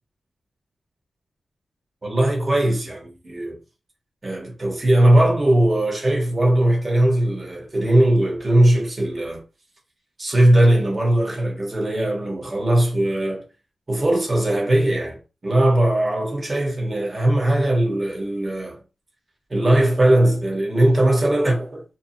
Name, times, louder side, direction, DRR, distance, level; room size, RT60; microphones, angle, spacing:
voice 1, 2.0-3.6 4.2-9.4 10.2-13.4 13.9-18.8 19.5-21.8, right 1 dB, 30° right, 1.1 m, -19 dB
2.7 x 2.3 x 2.7 m
wide cardioid pair, 85°, 0 cm